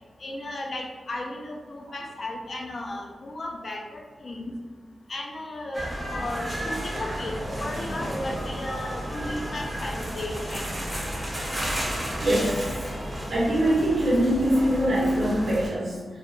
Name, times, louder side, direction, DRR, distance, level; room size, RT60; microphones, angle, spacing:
voice 1, 0.2-4.5 5.1-10.7, left 1 dB, 45° left, 0 dB, 0.3 m, -35 dB
sound 1, 5.7-15.7, equal, 15° right, 0.5 m, -32 dB
voice 2, 12.2-12.9 13.3-16.1, right 1 dB, 75° right, -7 dB, 0.5 m, -23 dB
2.6 x 2.1 x 2.3 m, 1.4 s
wide cardioid pair, 140°, 0 cm